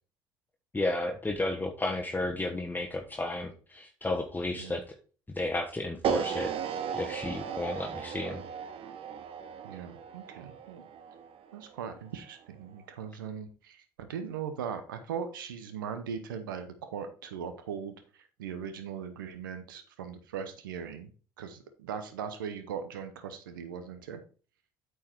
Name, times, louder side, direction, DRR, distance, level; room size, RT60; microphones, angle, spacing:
voice 1, 0.7-4.9 5.3-6.5 6.9-8.4, left 2 dB, 15° left, 2 dB, 1.2 m, -32 dB
sound 1, 6.0-12.2, right 8 dB, 60° right, 0.8 m, -36 dB
voice 2, 9.6-10.9 11.5-21.1 21.4-24.2, right 7 dB, 90° right, 9 dB, 0.8 m, -39 dB
8.6 x 4.8 x 4.5 m, 0.39 s
hypercardioid pair, 55°, 11 cm